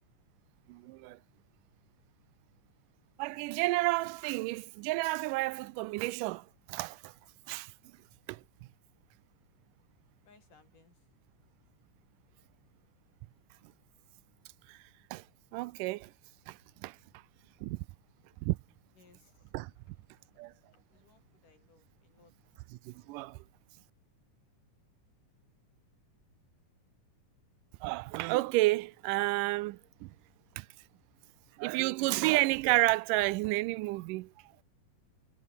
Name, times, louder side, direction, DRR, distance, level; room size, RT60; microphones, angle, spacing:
voice 1, 0.7-1.2 3.2-7.1 7.5-7.7 8.3-8.4 14.7-14.8 15.1-15.2 15.5-16.1 16.5-17.0 17.6-17.8 18.4-18.6 19.5-19.7 20.4-20.5 22.7-23.4 27.8-30.1 30.6-30.7 31.6-34.3, right 21 dB, 90° right, 2.2 m, -31 dB
voice 2, 10.3-10.9 19.0-19.3 20.9-22.3, left 4 dB, 80° left, 7.2 m, -63 dB
omnidirectional pair, 3.7 m